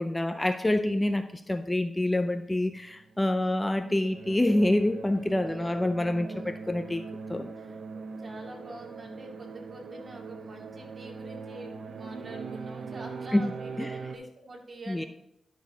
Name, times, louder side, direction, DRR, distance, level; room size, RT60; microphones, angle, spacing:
voice 1, 0.0-7.0 7.3-7.5 13.3-13.5 13.8-13.9 14.9-15.0, left 1 dB, 15° left, 9 dB, 0.5 m, -27 dB
sound 1, 2.9-14.2, right 4 dB, 75° right, 0.7 m, -41 dB
voice 2, 6.2-6.5 7.6-15.1, right 2 dB, 45° right, 0 dB, 2.1 m, -45 dB
11.5 x 6.1 x 2.8 m, 0.83 s
cardioid pair, 70°, 0 cm